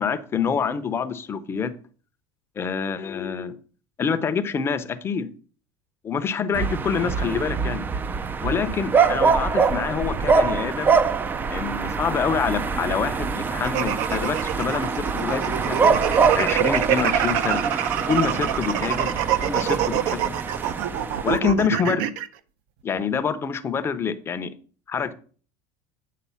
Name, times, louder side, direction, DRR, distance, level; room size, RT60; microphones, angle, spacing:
voice 1, 0.0-1.7 2.6-3.6 4.0-5.3 6.0-7.8 8.4-11.0 11.5-15.8 16.3-17.6 18.1-19.1 19.4-20.4 21.2-22.1 22.8-24.5 24.9-25.1, left 6 dB, 20° left, 10 dB, 0.6 m, -26 dB
sound 1, 6.5-21.4, right 5 dB, 20° right, 0.4 m, -24 dB
sound 2, 13.6-22.3, right 11 dB, 65° right, 0.6 m, -25 dB
8.5 x 3.8 x 5.5 m, 0.41 s
supercardioid pair, 140°, 11 cm